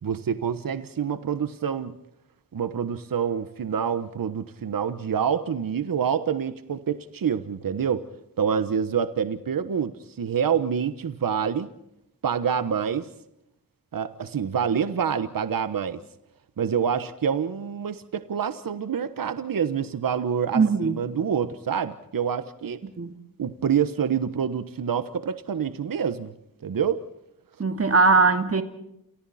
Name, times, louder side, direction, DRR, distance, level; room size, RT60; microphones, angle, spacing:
voice 1, 0.0-2.0 2.5-8.1 8.4-11.7 12.2-13.1 13.9-16.0 16.6-22.8 23.4-26.3 26.6-27.0, right 7 dB, 70° right, 1.3 m, -27 dB
voice 2, 20.5-21.0 22.8-23.2 27.6-28.6, right 4 dB, 40° right, 2.2 m, -20 dB
30.0 x 29.0 x 4.3 m
wide cardioid pair, 80°, 36 cm